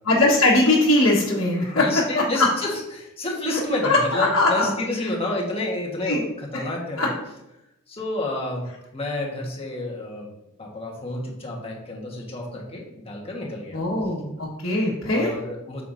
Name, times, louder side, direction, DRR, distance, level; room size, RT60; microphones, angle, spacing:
voice 1, 0.1-1.9 2.1-2.5 3.5-4.7 5.0-5.1 6.0-6.2 6.5-6.6 7.0-7.1 13.7-15.3, left 2 dB, 70° left, -7 dB, 1.7 m, -21 dB
voice 2, 1.6-7.2 7.9-8.6 8.9-10.3 10.6-13.8 15.0-15.8, left 2 dB, 25° left, -2 dB, 1.6 m, -30 dB
8.3 x 6.9 x 2.8 m, 0.88 s
head